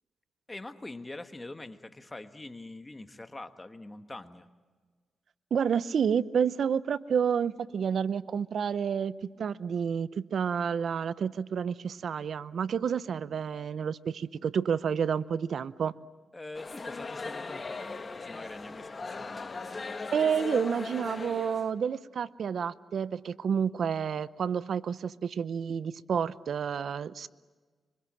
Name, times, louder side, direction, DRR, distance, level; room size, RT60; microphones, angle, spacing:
voice 1, 0.5-4.5 16.3-19.8, left 2 dB, 20° left, 8 dB, 1.5 m, -44 dB
voice 2, 5.5-15.9 20.1-27.3, right 7 dB, 65° right, 17 dB, 0.7 m, -30 dB
sound 1, 16.5-21.7, left 3 dB, 35° left, 1.6 m, -38 dB
25.0 x 24.5 x 7.5 m, 1.5 s
cardioid pair, 80°, 0 cm